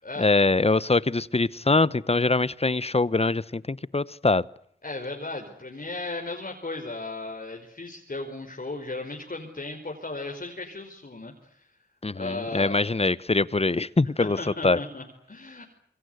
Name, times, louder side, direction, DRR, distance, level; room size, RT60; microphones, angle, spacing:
voice 1, 0.2-4.4 12.0-14.4 14.6-14.8, left 3 dB, 30° left, 1.0 m, -23 dB
voice 2, 4.8-11.7 12.1-12.8 14.2-15.6, left 2 dB, 50° left, 5.1 m, -36 dB
27.0 x 23.0 x 8.0 m
wide cardioid pair, 60°, 19 cm